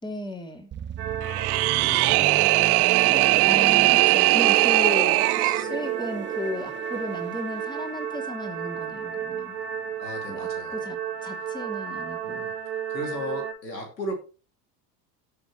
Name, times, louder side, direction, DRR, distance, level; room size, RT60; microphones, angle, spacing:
voice 1, 0.0-0.7 3.1-9.6 10.3-12.4, left 1 dB, 10° left, 3 dB, 3.0 m, -34 dB
sound 1, 0.7-10.4 10.6-10.9, right 9 dB, 25° right, 0.7 m, -36 dB
sound 2, 1.0-13.5, right 7 dB, 80° right, 1.7 m, -33 dB
sound 3, 1.2-5.7, right 22 dB, 60° right, 0.6 m, -20 dB
voice 2, 1.8-2.7 10.0-10.9 12.2-12.5 12.9-14.1, equal, 85° left, 3 dB, 2.9 m, -36 dB
18.0 x 6.6 x 3.2 m, 0.35 s
figure-of-eight pair, 70°, 49 cm